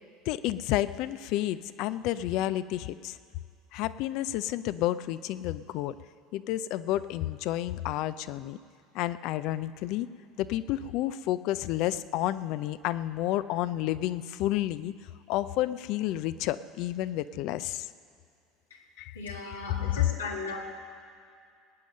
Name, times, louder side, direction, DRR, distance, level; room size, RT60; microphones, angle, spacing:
voice 1, 0.3-3.2 3.7-5.9 6.3-8.6 8.9-10.1 10.4-14.9 15.3-17.9 19.0-19.2 19.5-20.1, left 14 dB, 60° left, 15 dB, 0.5 m, -30 dB
voice 2, 19.1-20.6, left 3 dB, 90° left, 0 dB, 2.0 m, -37 dB
19.5 x 9.2 x 6.4 m, 2.3 s
hypercardioid pair, 75°, 0 cm